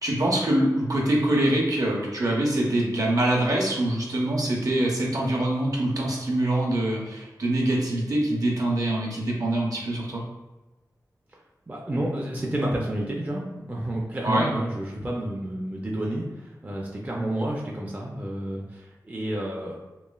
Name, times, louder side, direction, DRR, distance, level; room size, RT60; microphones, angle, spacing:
voice 1, 0.0-10.2 14.2-14.5, right 1 dB, 55° right, -2 dB, 0.7 m, -24 dB
voice 2, 11.7-19.7, right 1 dB, 20° right, -3 dB, 0.4 m, -30 dB
3.0 x 2.2 x 2.3 m, 1.1 s
wide cardioid pair, 65°, 7 cm